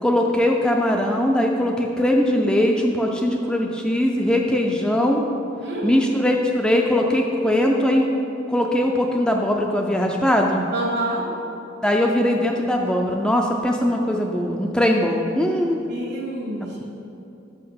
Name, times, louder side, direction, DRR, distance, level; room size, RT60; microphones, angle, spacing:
voice 1, 0.0-5.3 5.8-8.1 8.5-10.6 11.8-15.8 16.6-16.8, left 1 dB, 5° left, 1 dB, 0.3 m, -20 dB
voice 2, 5.6-6.0 10.7-11.3 15.9-16.8, right 1 dB, 60° right, -1 dB, 1.4 m, -28 dB
5.8 x 5.6 x 5.5 m, 2.8 s
head